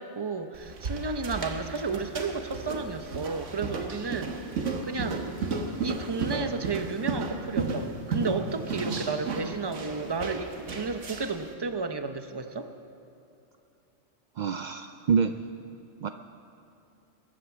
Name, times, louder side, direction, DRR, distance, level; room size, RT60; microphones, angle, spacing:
voice 1, 0.0-4.3 4.8-5.3 5.8-12.7, right 4 dB, 25° right, 8 dB, 0.7 m, -32 dB
footsteps wooden stairs barefoot, 0.5-11.4, right 4 dB, 80° right, 1.6 m, -34 dB
voice 2, 14.4-15.3 16.0-16.1, right 6 dB, 65° right, 8 dB, 0.4 m, -26 dB
22.5 x 8.9 x 7.2 m, 2.7 s
omnidirectional pair, 1.2 m